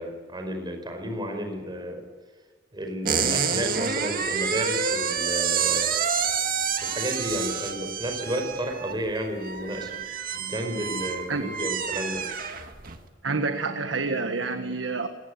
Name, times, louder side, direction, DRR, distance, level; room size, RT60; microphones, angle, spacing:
voice 1, 0.0-2.0 2.7-5.9 6.8-10.0 10.3-12.2, equal, 25° right, 5 dB, 5.2 m, -32 dB
sound 1, 3.0-13.0, right 6 dB, 50° right, 2.1 m, -28 dB
voice 2, 13.2-15.1, right 3 dB, 75° right, 7 dB, 1.5 m, -28 dB
26.0 x 20.0 x 8.2 m, 1.4 s
head